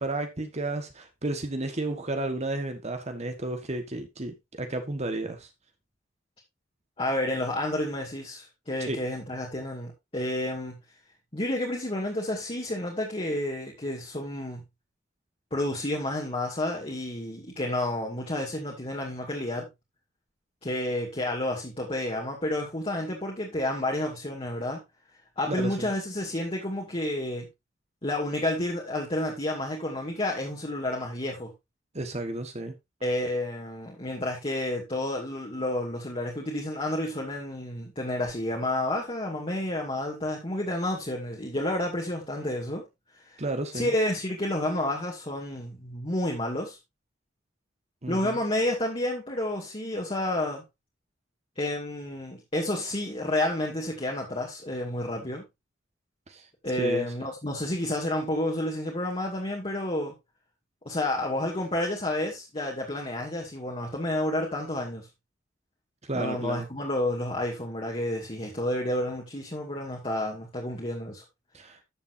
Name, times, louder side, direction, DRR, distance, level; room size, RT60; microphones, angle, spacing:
voice 1, 0.0-5.5 8.9-9.0 25.5-25.9 31.9-32.8 43.4-43.9 48.0-48.4 56.3-56.5 56.8-57.1 66.0-66.7 71.5-71.8, right 2 dB, 35° right, 1.4 m, -32 dB
voice 2, 7.0-10.8 11.3-14.6 15.5-19.7 20.6-24.8 25.4-27.5 28.0-31.5 33.0-42.9 43.3-43.4 43.7-46.8 48.1-50.6 51.6-55.4 56.6-60.1 60.9-65.1 66.1-71.2, left 1 dB, 30° left, 2.3 m, -30 dB
13.0 x 7.3 x 2.6 m
head